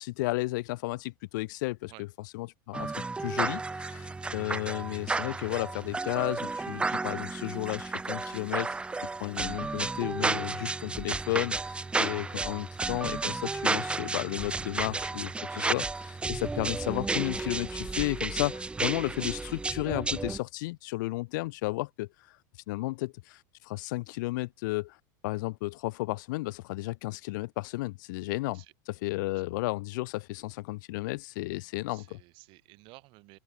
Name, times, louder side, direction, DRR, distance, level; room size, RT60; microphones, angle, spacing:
voice 1, 0.0-1.9 2.3-2.9 3.2-8.7 9.2-22.1 22.7-25.0 25.2-28.6 29.0-32.2, left 21 dB, 70° left, 0.9 m, -33 dB
sound 1, 2.7-20.4, right 3 dB, 10° right, 0.7 m, -32 dB
voice 2, 31.8-33.4, right 24 dB, 50° right, 7.2 m, -53 dB
open air
supercardioid pair, 125°, 11 cm